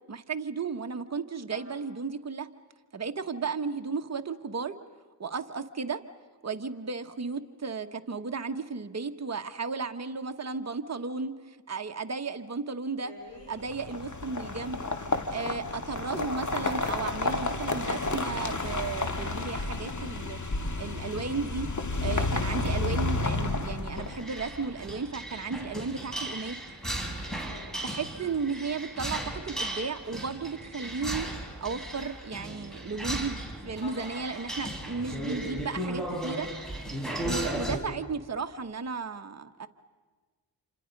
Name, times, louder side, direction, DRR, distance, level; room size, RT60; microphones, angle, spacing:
voice 1, 0.1-2.5 2.9-4.8 5.2-6.0 6.4-13.1 13.5-14.9 15.3-20.4 20.8-21.7 22.0-26.7 27.4-27.5 27.8-36.5 37.2-39.7, right 4 dB, 35° right, 6 dB, 1.3 m, -34 dB
voice 2, 13.0-13.6 27.1-27.8 28.7-28.8 33.8-34.2, left 3 dB, 65° left, 0 dB, 5.1 m, -47 dB
sound 1, 13.6-24.4, left 2 dB, 40° left, 2.2 m, -31 dB
sound 2, 23.9-37.8, right 1 dB, ahead, 4.6 m, -36 dB
28.0 x 26.0 x 5.4 m, 1.4 s
cardioid pair, 45°, 45 cm